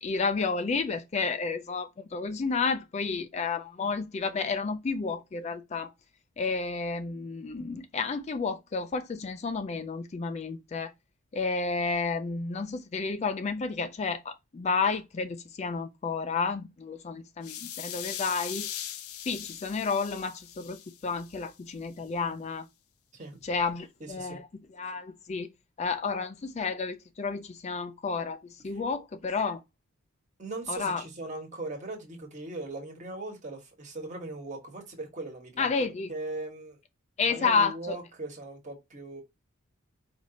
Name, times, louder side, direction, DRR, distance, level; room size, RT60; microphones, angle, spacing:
voice 1, 0.0-5.9 6.4-10.9 11.3-18.7 19.2-22.6 23.4-24.5 24.8-25.5 25.8-29.6 30.7-31.0 35.6-36.1 37.2-38.0, left 4 dB, 30° left, 0.3 m, -31 dB
sound 1, 17.4-21.5, left 11 dB, 80° left, 0.6 m, -40 dB
voice 2, 24.0-24.4 28.7-28.8 30.4-35.7 36.1-36.8 37.3-39.2, right 2 dB, 35° right, 1.3 m, -39 dB
4.8 x 2.6 x 4.0 m
head